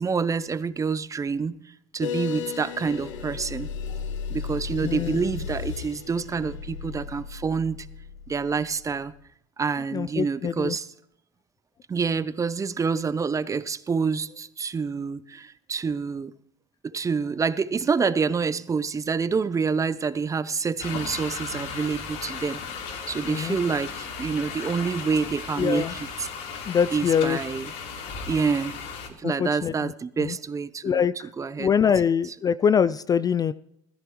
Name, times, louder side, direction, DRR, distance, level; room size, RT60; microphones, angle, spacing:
voice 1, 0.0-1.6 1.9-3.7 4.3-7.8 8.3-9.1 9.6-10.9 11.9-16.3 16.8-22.6 23.1-25.9 26.2-26.3 26.9-27.7 28.3-28.8 29.2-31.0 31.4-31.7, right 5 dB, 20° right, 0.7 m, -27 dB
sound 1, 2.0-9.2, left 6 dB, 80° left, 1.2 m, -35 dB
voice 2, 4.8-5.2 9.9-10.8 23.3-23.6 25.6-25.9 26.7-27.4 29.2-29.9 30.2-30.4 30.8-31.3 31.6-33.5, left 7 dB, 25° left, 0.4 m, -24 dB
sound 2, 20.8-29.1, left 5 dB, 60° left, 3.2 m, -36 dB
16.5 x 14.5 x 3.1 m
hypercardioid pair, 85°, 16 cm